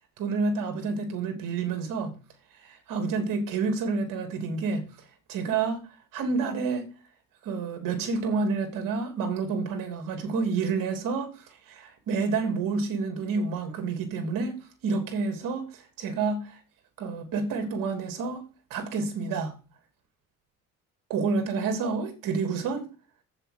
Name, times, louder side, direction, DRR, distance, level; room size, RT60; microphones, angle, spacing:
voice 1, 0.2-2.1 2.6-4.8 5.3-5.8 6.1-6.8 7.4-11.3 11.7-14.5 14.8-16.6 17.0-18.4 18.7-19.5 21.1-22.9, right 4 dB, 75° right, 3.1 m, -29 dB
7.9 x 7.5 x 6.6 m
cardioid pair, 90°, 33 cm